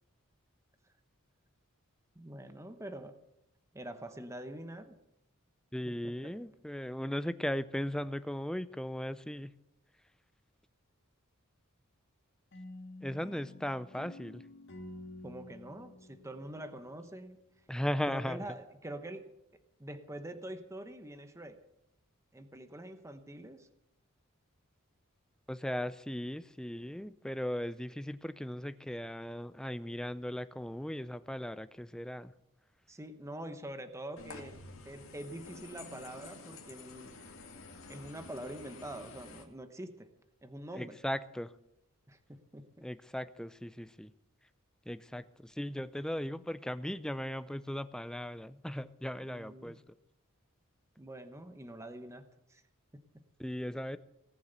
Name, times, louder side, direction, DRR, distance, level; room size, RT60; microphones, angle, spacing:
voice 1, 2.1-3.2 3.7-5.0 5.9-6.3 15.2-17.4 18.1-19.3 19.8-21.6 22.3-23.7 32.9-34.6 34.8-37.2 37.9-40.1 40.4-41.0 42.1-42.9 49.2-49.8 51.0-52.6 52.9-53.2, right 1 dB, 15° right, 9 dB, 1.0 m, -45 dB
voice 2, 5.7-9.5 13.0-14.5 17.7-18.4 25.5-32.3 40.7-41.5 42.8-44.1 44.9-49.8 53.4-54.0, equal, 5° left, 13 dB, 0.5 m, -37 dB
sound 1, 12.5-17.4, left 2 dB, 60° left, 1.8 m, -50 dB
sound 2, 34.2-39.4, left 3 dB, 75° left, 2.3 m, -50 dB
18.5 x 7.2 x 8.1 m, 0.84 s
head